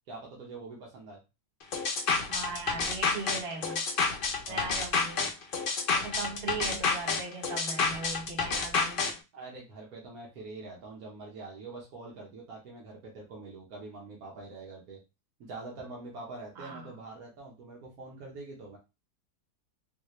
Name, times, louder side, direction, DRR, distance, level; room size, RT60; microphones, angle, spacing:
voice 1, 0.1-1.2 4.5-4.7 6.1-6.2 9.3-15.0 15.4-18.8, right 3 dB, 70° right, -2 dB, 1.4 m, -44 dB
sound 1, 1.7-9.1, left 4 dB, 50° left, 0.6 m, -29 dB
voice 2, 2.3-3.8 4.5-5.3 5.9-9.1 16.5-16.9, right 4 dB, 45° right, 0 dB, 1.0 m, -39 dB
4.0 x 2.3 x 3.1 m, 0.26 s
omnidirectional pair, 1.6 m